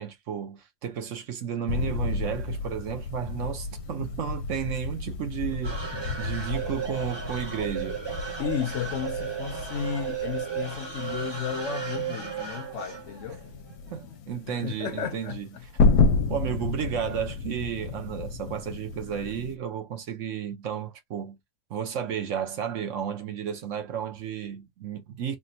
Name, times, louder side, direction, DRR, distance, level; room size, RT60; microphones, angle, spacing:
voice 1, 0.0-8.0 13.9-15.7 16.3-21.4 21.7-25.4, right 8 dB, 65° right, 1.0 m, -33 dB
sound 1, 1.7-19.6, left 4 dB, 85° left, 1.1 m, -31 dB
sound 2, 5.6-14.0, right 7 dB, 20° right, 0.8 m, -35 dB
voice 2, 8.4-13.4 14.5-15.4 15.8-15.9, left 8 dB, 65° left, 0.8 m, -33 dB
3.4 x 2.2 x 2.6 m
omnidirectional pair, 1.5 m